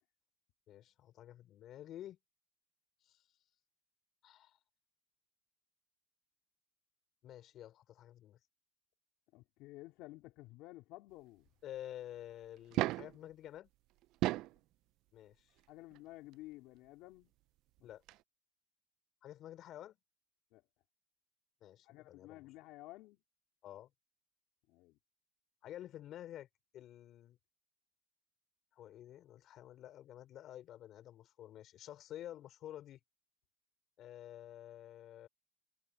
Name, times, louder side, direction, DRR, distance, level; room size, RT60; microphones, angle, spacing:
voice 1, 0.7-2.2 3.0-3.2 4.2-4.6 7.2-8.4 11.6-13.7 15.1-15.5 17.8-18.0 19.2-20.0 21.6-22.4 23.6-23.9 25.6-26.5 26.7-27.4 28.8-33.0 34.0-35.3, left 12 dB, 50° left, 5.3 m, -50 dB
voice 2, 9.3-11.5 14.2-14.4 15.7-17.3 17.8-17.9 20.5-20.6 21.8-23.2 24.7-25.0, left 19 dB, 65° left, 3.4 m, -53 dB
sound 1, 12.6-13.2 14.0-14.6 15.9-16.0 17.8-17.9 18.1-18.2, right 17 dB, 60° right, 0.3 m, -34 dB
supercardioid pair, 110°, 0 cm